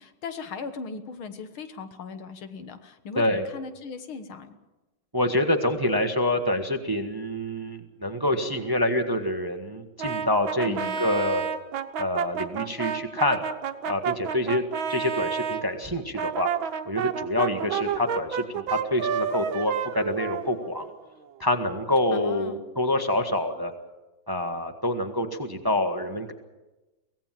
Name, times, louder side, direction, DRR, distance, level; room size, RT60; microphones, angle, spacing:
voice 1, 0.0-4.6 10.7-11.0 22.1-22.6, left 5 dB, 80° left, 9 dB, 2.2 m, -38 dB
voice 2, 5.1-11.4 12.0-13.4 13.9-14.6 14.9-16.5 16.8-20.9 21.4-23.7 24.3-26.3, left 1 dB, 15° right, 6 dB, 1.1 m, -26 dB
Brass instrument, 10.0-15.6 16.2-20.9, right 7 dB, 75° right, 1.8 m, -30 dB
24.0 x 17.5 x 7.5 m, 1.1 s
omnidirectional pair, 2.2 m